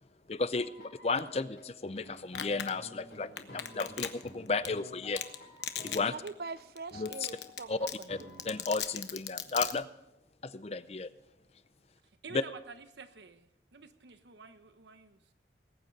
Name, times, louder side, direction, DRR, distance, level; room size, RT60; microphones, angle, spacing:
voice 1, 0.3-0.7 1.0-5.2 5.8-6.1 7.0-7.3 7.7-8.2 8.4-9.9 10.4-11.1 12.3-12.4, left 3 dB, 35° left, 14 dB, 0.5 m, -33 dB
sound 1, 0.5-6.6 6.9-7.8 8.1-8.9, left 2 dB, 55° left, 3.4 m, -51 dB
Domestic sounds home sounds, 2.3-2.7 3.4-4.3 4.6-4.7 5.2-5.3 5.6-6.0 6.3-6.4 6.8-6.9 7.1-7.6 7.9-9.7, left 10 dB, 85° left, 1.0 m, -35 dB
voice 2, 6.0-8.4, right 4 dB, 60° right, 16 dB, 0.5 m, -44 dB
voice 3, 12.2-15.2, right 4 dB, 85° right, 9 dB, 1.1 m, -50 dB
19.5 x 9.0 x 5.4 m, 0.86 s
head